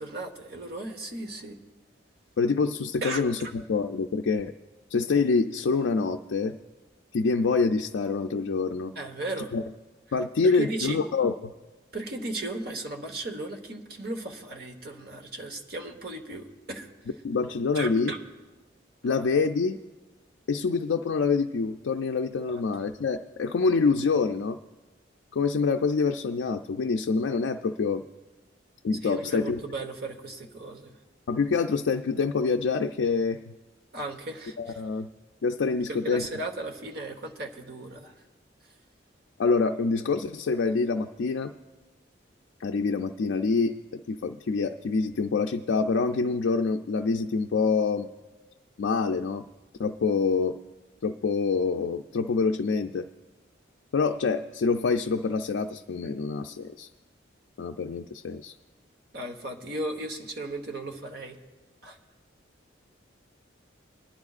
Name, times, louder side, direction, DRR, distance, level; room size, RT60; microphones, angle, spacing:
voice 1, 0.0-1.6 3.0-3.5 8.9-9.5 10.4-11.0 11.9-16.9 17.7-18.2 22.5-22.9 28.9-30.9 33.9-34.8 35.8-38.1 59.1-61.4 61.8-62.0, right 2 dB, 55° right, 4 dB, 1.1 m, -36 dB
voice 2, 2.4-3.4 3.7-4.5 4.9-6.6 7.1-8.9 9.5-9.6 10.1-11.5 17.2-18.1 19.0-19.8 20.5-24.6 25.3-28.0 28.8-29.6 31.3-33.5 34.6-35.1 35.4-36.2 39.4-41.5 42.6-48.1 48.8-49.5 49.8-50.6 51.0-53.1 53.9-56.9 57.6-58.6, left 4 dB, 75° left, 3 dB, 0.4 m, -26 dB
23.0 x 10.5 x 2.4 m, 1.2 s
head